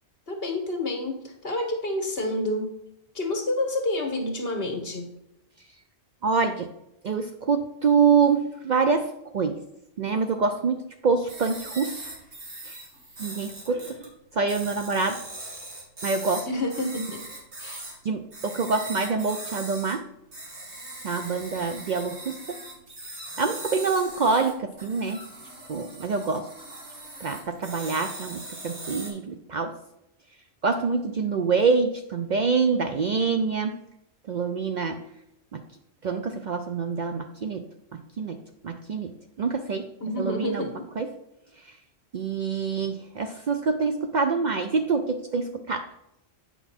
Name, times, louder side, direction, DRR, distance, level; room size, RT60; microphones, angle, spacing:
voice 1, 0.3-2.7 3.1-5.1 16.5-17.2 17.6-17.9 40.0-40.7, left 1 dB, 60° left, 3 dB, 1.7 m, -28 dB
voice 2, 6.2-6.7 7.0-9.6 10.0-12.1 12.7-12.8 13.2-15.2 16.0-16.5 18.0-20.0 21.0-22.6 23.4-25.2 25.7-26.5 27.2-29.8 30.6-33.8 34.3-35.1 35.5-35.6 36.0-37.7 38.2-39.9 40.2-40.7 41.0-41.1 42.1-45.9, right 5 dB, 55° right, 7 dB, 0.5 m, -26 dB
sound 1, 11.3-14.1 14.5-18.0 18.3-19.9 20.3-29.1, right 2 dB, 85° right, 2.4 m, -40 dB
8.3 x 5.4 x 4.2 m, 0.86 s
omnidirectional pair, 1.1 m